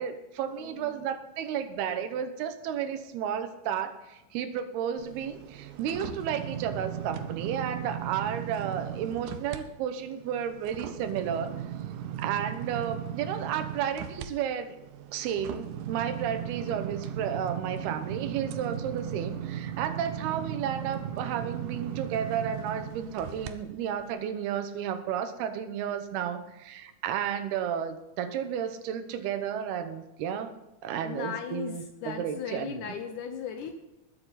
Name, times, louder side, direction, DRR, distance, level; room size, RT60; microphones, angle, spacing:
voice 1, 0.0-11.5 12.2-14.8 15.1-30.5 30.8-32.9, right 8 dB, 90° right, 9 dB, 3.0 m, -32 dB
voice 2, 0.5-1.1 31.0-33.7, left 7 dB, 75° left, 7 dB, 1.9 m, -38 dB
sound 1, 5.0-9.6 10.0-23.5 24.0-24.1, right 10 dB, 75° right, 2.0 m, -37 dB
20.5 x 8.0 x 4.2 m, 0.98 s
omnidirectional pair, 4.4 m